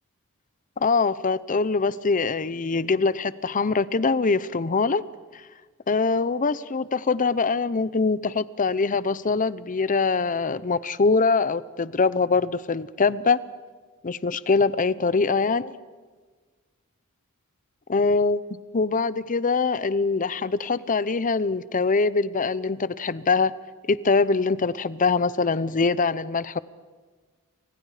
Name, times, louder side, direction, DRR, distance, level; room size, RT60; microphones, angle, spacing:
voice 1, 0.8-5.0 5.9-13.4 14.0-15.7 17.9-23.5 23.9-26.6, left 4 dB, 40° left, 17 dB, 0.7 m, -23 dB
30.0 x 25.5 x 5.0 m, 1.4 s
head